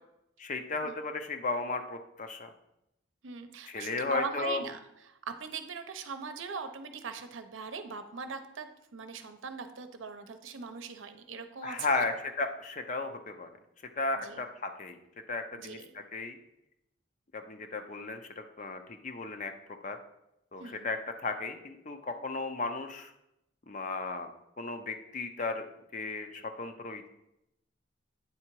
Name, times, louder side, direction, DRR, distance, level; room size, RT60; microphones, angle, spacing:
voice 1, 0.4-2.5 3.7-4.6 11.6-13.5 14.0-15.0 15.3-16.4 17.3-19.5 19.8-20.0 20.5-23.1 23.7-24.3 24.6-25.7 25.9-27.0, left 3 dB, 40° left, 7 dB, 0.6 m, -35 dB
voice 2, 3.2-12.1 14.2-14.4 15.6-15.9 20.6-20.9, right 5 dB, 80° right, 8 dB, 0.7 m, -40 dB
8.6 x 3.8 x 4.6 m, 0.85 s
head